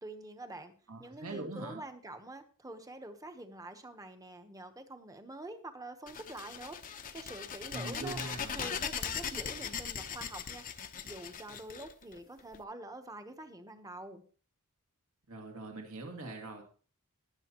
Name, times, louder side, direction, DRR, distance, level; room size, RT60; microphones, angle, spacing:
voice 1, 0.0-0.7 1.0-6.8 7.1-8.2 8.5-14.2, right 2 dB, 15° right, 7 dB, 1.0 m, -46 dB
voice 2, 0.9-1.8 7.7-8.8 15.3-16.6, right 2 dB, 70° right, 1 dB, 2.3 m, -42 dB
sound 1, 6.1-12.6, left 7 dB, 40° left, 0.8 m, -39 dB
20.0 x 7.2 x 3.0 m, 0.40 s
head